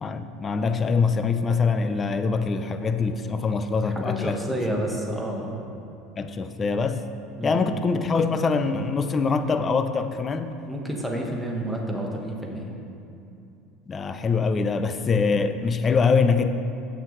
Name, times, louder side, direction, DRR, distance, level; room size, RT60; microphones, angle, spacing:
voice 1, 0.0-4.8 6.2-7.0 7.4-10.5 13.9-16.5, left 4 dB, 25° left, 9 dB, 0.5 m, -24 dB
voice 2, 3.8-5.6 7.4-7.6 10.7-12.7, right 1 dB, ahead, -1 dB, 1.3 m, -30 dB
16.0 x 6.1 x 3.2 m, 2.7 s
supercardioid pair, 125°, 0 cm